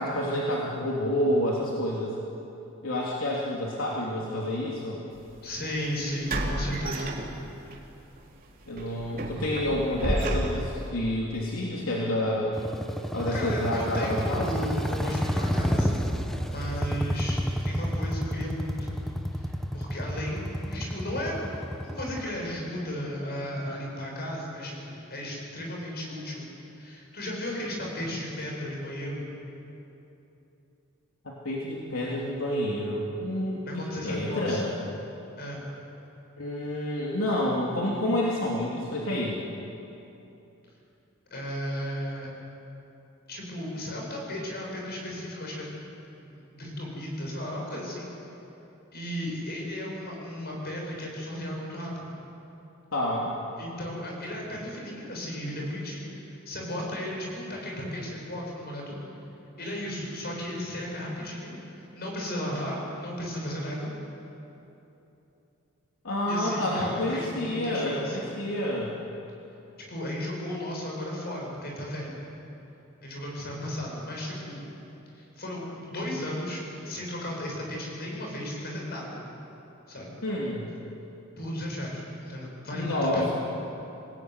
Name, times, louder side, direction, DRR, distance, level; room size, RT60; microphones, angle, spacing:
voice 1, 0.0-2.2 2.8-5.0 8.7-12.6 13.1-14.7 31.2-34.7 36.4-39.4 52.9-53.3 66.0-69.0 80.2-80.7 82.7-83.3, left 1 dB, 75° left, -4 dB, 3.2 m, -29 dB
sound 1, 5.2-5.3 6.3-7.7 8.1-8.3 8.8-10.9, right 1 dB, 45° right, 3.3 m, -31 dB
voice 2, 5.4-7.1 13.3-19.0 19.4-21.4 21.8-29.3 33.7-34.6 35.4-35.6 41.3-42.3 43.3-45.7 46.2-48.1 48.9-52.1 53.6-59.1 59.6-63.9 66.3-68.2 69.9-72.2 73.0-74.6 75.1-79.2 79.9-80.1 81.4-83.3, left 1 dB, 50° left, -1 dB, 7.6 m, -35 dB
sound 2, 12.6-22.2, equal, ahead, 1.2 m, -29 dB
27.0 x 19.5 x 9.7 m, 3.0 s
head